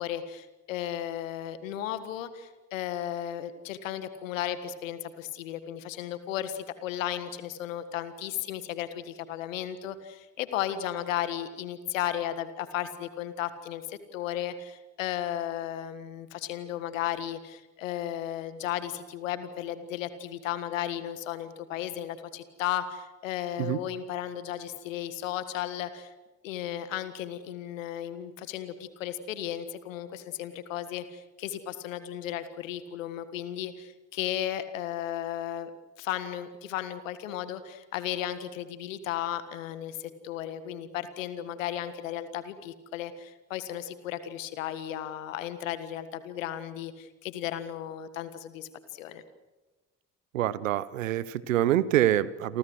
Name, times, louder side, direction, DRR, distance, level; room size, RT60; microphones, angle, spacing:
voice 1, 0.0-26.1 26.4-35.7 36.0-49.2, left 11 dB, 85° left, 12 dB, 1.6 m, -35 dB
voice 2, 50.3-52.6, right 13 dB, 90° right, 19 dB, 0.8 m, -26 dB
29.0 x 24.0 x 6.3 m, 1.2 s
hypercardioid pair, 45°, 38 cm